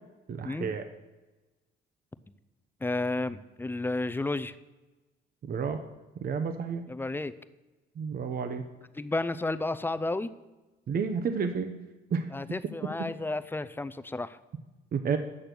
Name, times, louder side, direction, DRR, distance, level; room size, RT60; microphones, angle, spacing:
voice 1, 0.3-0.8 5.5-5.8 6.2-6.8 8.0-8.6 10.9-11.8 12.1-12.3 12.8-12.9 14.9-15.2, right 6 dB, 50° right, 7 dB, 0.7 m, -30 dB
voice 2, 2.8-4.6 6.9-7.3 8.9-10.3 12.3-14.4, left 2 dB, 10° left, 14 dB, 0.4 m, -32 dB
8.6 x 6.6 x 6.0 m, 1.1 s
cardioid pair, 90°, 20 cm